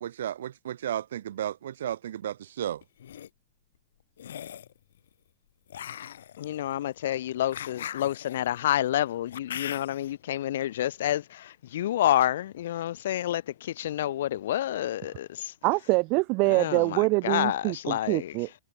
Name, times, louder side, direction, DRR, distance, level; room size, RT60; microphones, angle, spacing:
voice 1, 0.0-2.8, right 10 dB, 75° right, 0.6 m, -33 dB
sound 1, 2.8-3.3 4.2-4.7 5.7-10.1, left 10 dB, 85° left, 4.9 m, -40 dB
voice 2, 6.4-15.5 16.5-18.3, left 12 dB, 60° left, 0.7 m, -29 dB
voice 3, 15.6-18.6, right 28 dB, 30° right, 0.7 m, -25 dB
supercardioid pair, 175°, 0 cm